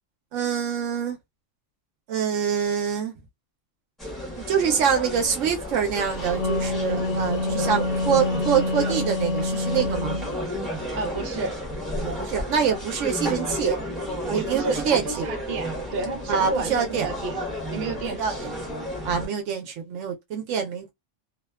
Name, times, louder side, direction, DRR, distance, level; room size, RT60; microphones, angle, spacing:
voice 1, 0.3-1.2 2.1-3.1 4.5-10.2 12.0-13.8 14.3-15.3 16.3-17.1 18.2-18.5 19.0-20.9, right 7 dB, 80° right, 0.9 m, -25 dB
sound 1, 4.0-19.3, left 1 dB, ahead, 0.9 m, -32 dB
Wind instrument woodwind instrument, 6.1-10.3, left 2 dB, 80° left, 0.9 m, -27 dB
voice 2, 11.0-11.6 13.2-13.4 14.3-17.4 17.7-18.4, right 3 dB, 55° right, 0.9 m, -31 dB
2.7 x 2.1 x 2.2 m
omnidirectional pair, 1.3 m